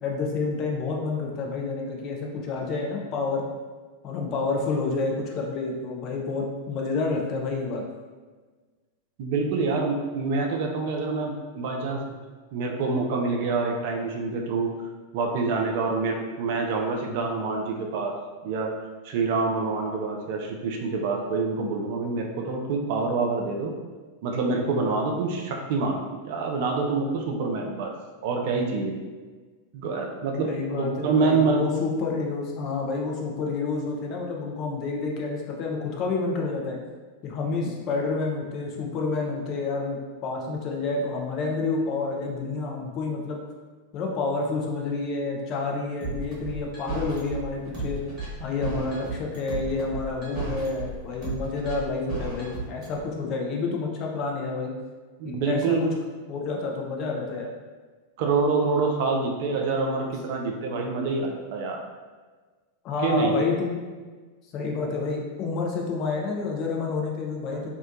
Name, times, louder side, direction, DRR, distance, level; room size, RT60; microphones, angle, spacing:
voice 1, 0.0-3.4 4.0-7.8 30.4-36.8 37.2-43.4 43.9-48.0 48.4-54.7 55.2-55.9 56.3-57.5 62.8-63.8 64.5-67.7, left 3 dB, 35° left, 0 dB, 0.4 m, -29 dB
voice 2, 9.2-12.0 12.5-14.7 15.1-18.2 18.4-18.7 19.0-23.8 24.2-27.9 28.2-28.9 29.7-30.5 30.8-31.6 55.2-55.8 58.2-61.8 63.0-63.4, right 4 dB, 50° right, 2 dB, 0.3 m, -26 dB
sound 1, 46.0-53.0, right 3 dB, 30° right, 1.2 m, -33 dB
2.7 x 2.1 x 2.5 m, 1.4 s
figure-of-eight pair, 90°, 0 cm